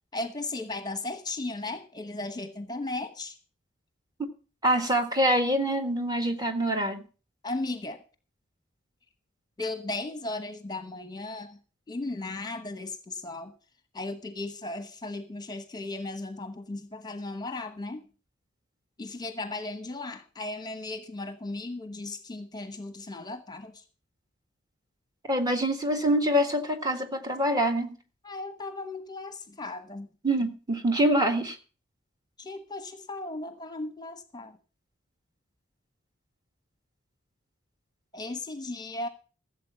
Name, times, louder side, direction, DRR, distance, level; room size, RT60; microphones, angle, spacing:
voice 1, 0.1-3.3 7.4-8.0 9.6-11.6 11.9-13.5 13.9-18.0 19.0-23.8 28.2-30.1 32.4-34.6 38.1-39.1, left 2 dB, 20° left, 1.0 m, -36 dB
voice 2, 4.6-7.0 25.3-28.0 30.2-31.6, right 1 dB, 20° right, 1.7 m, -25 dB
15.5 x 7.7 x 5.7 m
head